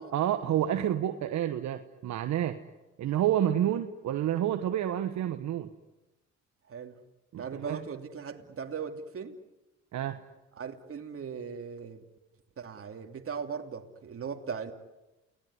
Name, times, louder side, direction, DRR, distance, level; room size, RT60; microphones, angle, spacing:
voice 1, 0.0-2.6 3.0-5.7 7.3-7.8 9.9-10.2, right 11 dB, 70° right, 1.3 m, -29 dB
voice 2, 6.7-7.0 7.4-9.4 10.5-12.0 12.6-14.7, right 6 dB, 50° right, 2.9 m, -38 dB
30.0 x 19.5 x 9.7 m
supercardioid pair, 65°, 29 cm